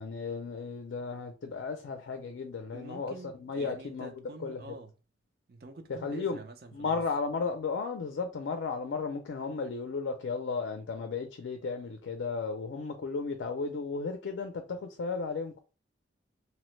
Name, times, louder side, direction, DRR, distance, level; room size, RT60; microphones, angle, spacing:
voice 1, 0.0-3.1 3.4-4.6 6.0-6.4 6.7-15.6, left 4 dB, 70° left, 0.4 m, -34 dB
voice 2, 2.7-4.9 5.5-7.0, right 2 dB, 50° right, 0.4 m, -47 dB
2.9 x 2.1 x 3.0 m
head